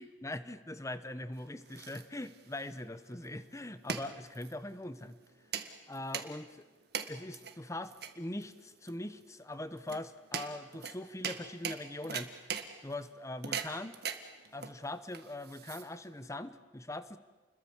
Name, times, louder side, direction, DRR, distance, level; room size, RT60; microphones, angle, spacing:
voice 1, 0.0-5.2 5.9-6.5 7.1-12.5 12.8-14.0 14.5-17.2, left 1 dB, 15° left, 13 dB, 1.0 m, -42 dB
sound 1, 1.3-16.2, right 7 dB, 55° right, 1.8 m, -42 dB
29.5 x 21.5 x 7.3 m, 1.3 s
head